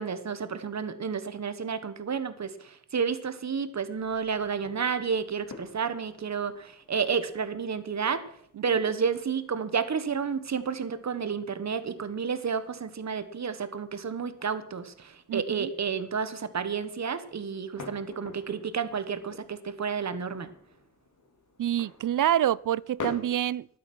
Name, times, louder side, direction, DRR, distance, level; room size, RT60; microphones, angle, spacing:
voice 1, 0.0-8.2 8.6-20.5, right 6 dB, 60° right, 1.3 m, -31 dB
sound 1, 3.9-23.2, left 3 dB, 70° left, 2.8 m, -49 dB
voice 2, 15.3-15.7 21.6-23.7, right 11 dB, 75° right, 0.5 m, -27 dB
14.0 x 11.5 x 6.1 m
wide cardioid pair, 110°, 31 cm